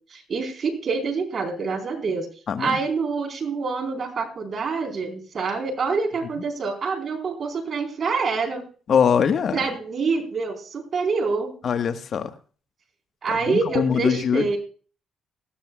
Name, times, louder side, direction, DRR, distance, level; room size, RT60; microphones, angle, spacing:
voice 1, 0.1-2.3 2.6-8.6 9.5-11.5 13.2-14.6, right 4 dB, 50° right, 4 dB, 4.1 m, -26 dB
voice 2, 2.5-2.8 8.9-9.6 11.6-12.3 13.5-14.6, left 7 dB, 55° left, 9 dB, 1.3 m, -22 dB
19.0 x 14.0 x 2.3 m, 0.39 s
cardioid pair, 90°, 0 cm